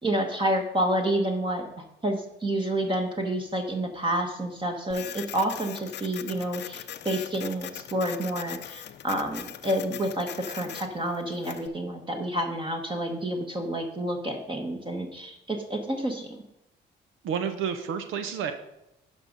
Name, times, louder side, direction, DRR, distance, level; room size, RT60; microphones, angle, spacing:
voice 1, 0.0-16.4, right 1 dB, 25° right, 3 dB, 1.3 m, -29 dB
Printer, 4.9-11.7, left 10 dB, 60° left, 0.6 m, -41 dB
voice 2, 17.2-18.5, right 7 dB, 85° right, 8 dB, 0.9 m, -30 dB
11.0 x 5.4 x 5.3 m, 0.89 s
cardioid pair, 90°, 20 cm